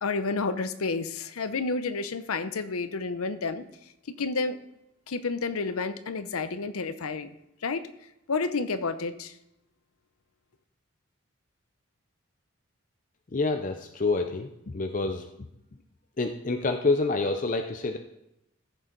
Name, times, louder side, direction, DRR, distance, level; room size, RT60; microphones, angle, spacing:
voice 1, 0.0-3.7 4.1-4.6 5.1-7.3 7.6-7.9 8.3-9.4, left 4 dB, 90° left, 12 dB, 0.7 m, -30 dB
voice 2, 13.3-15.3 16.2-18.0, left 3 dB, 35° left, 6 dB, 0.5 m, -27 dB
14.5 x 6.9 x 3.9 m, 0.85 s
head